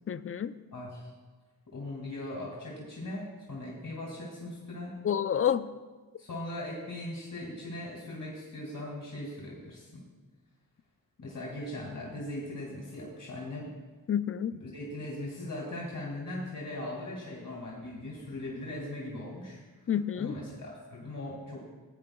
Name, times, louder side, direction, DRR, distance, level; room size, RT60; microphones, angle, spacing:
voice 1, 0.1-0.5 5.0-5.7 14.1-14.5 19.9-20.3, left 9 dB, 35° left, 13 dB, 0.5 m, -28 dB
voice 2, 0.7-1.1 1.7-5.0 6.2-10.0 11.2-13.7 14.5-19.6 20.1-21.6, left 1 dB, 55° left, -3 dB, 2.2 m, -39 dB
16.0 x 9.6 x 2.3 m, 1.3 s
cardioid pair, 50°, 37 cm